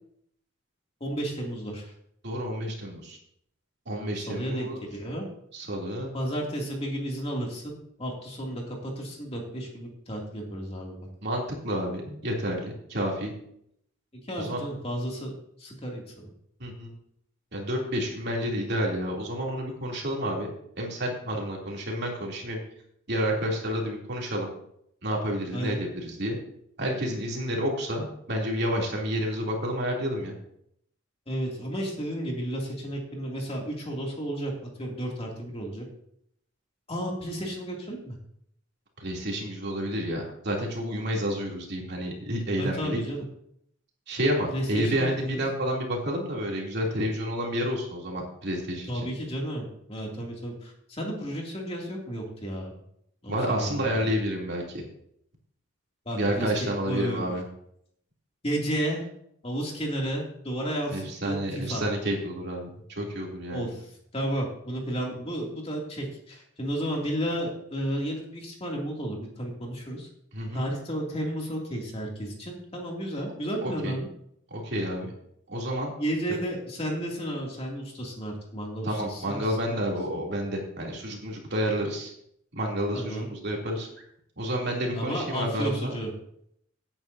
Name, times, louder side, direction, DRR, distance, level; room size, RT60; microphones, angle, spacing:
voice 1, 1.0-1.9 4.2-5.3 6.1-11.0 14.2-15.3 15.6-16.0 25.5-25.8 31.3-35.8 36.9-38.2 42.6-43.3 44.5-45.4 48.9-52.7 53.2-53.9 56.1-57.3 58.4-59.1 59.4-61.8 63.5-63.9 64.1-70.1 70.5-74.1 76.0-79.6 82.9-83.3 84.9-86.1, right 1 dB, 30° left, -1 dB, 2.5 m, -32 dB
voice 2, 2.2-3.2 3.9-4.8 5.5-6.1 11.2-13.3 14.4-14.6 16.6-16.9 17.5-20.5 20.8-22.6 23.1-24.5 25.0-26.4 26.8-30.3 39.0-43.0 44.1-49.1 53.3-54.8 56.1-57.4 60.9-63.7 70.3-70.7 73.6-74.0 74.5-75.1 75.5-75.9 78.8-82.1 82.5-83.9 84.4-85.9, equal, 55° right, -1 dB, 2.9 m, -30 dB
18.0 x 8.9 x 2.7 m, 0.71 s
head